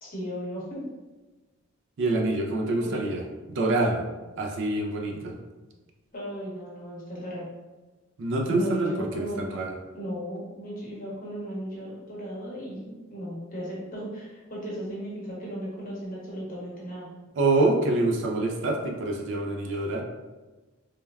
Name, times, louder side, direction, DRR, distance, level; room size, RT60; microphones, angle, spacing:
voice 1, 0.0-0.8 2.8-3.1 6.1-7.5 8.5-9.5 9.9-17.1, equal, 40° left, -6 dB, 0.9 m, -36 dB
voice 2, 2.0-3.2 3.5-4.0 4.4-5.4 8.2-9.7 17.4-20.0, right 2 dB, 55° right, 2 dB, 0.4 m, -26 dB
3.2 x 2.1 x 2.2 m, 1.2 s
head